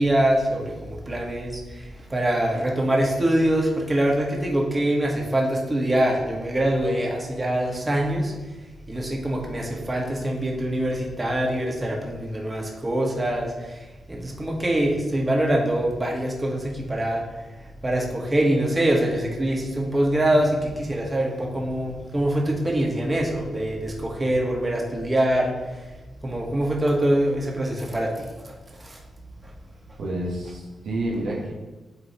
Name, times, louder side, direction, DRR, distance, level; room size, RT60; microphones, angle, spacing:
voice 1, 0.0-1.8 2.1-8.3 8.9-13.5 14.1-17.2 17.8-25.5 26.2-28.1 28.8-29.0, right 1 dB, 25° right, -1 dB, 1.3 m, -24 dB
voice 2, 30.0-31.5, right 1 dB, 85° right, -4 dB, 1.3 m, -29 dB
8.6 x 3.9 x 2.9 m, 1.2 s
supercardioid pair, 55°, 0 cm